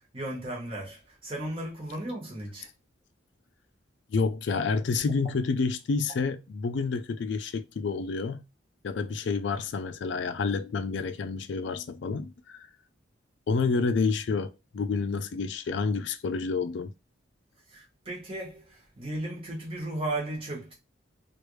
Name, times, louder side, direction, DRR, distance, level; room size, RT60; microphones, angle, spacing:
voice 1, 0.1-2.7 17.7-20.7, right 1 dB, 30° right, 1.1 m, -35 dB
voice 2, 4.1-8.4 8.8-12.7 13.5-16.9, left 4 dB, 65° left, 0.3 m, -29 dB
3.1 x 2.4 x 3.1 m
head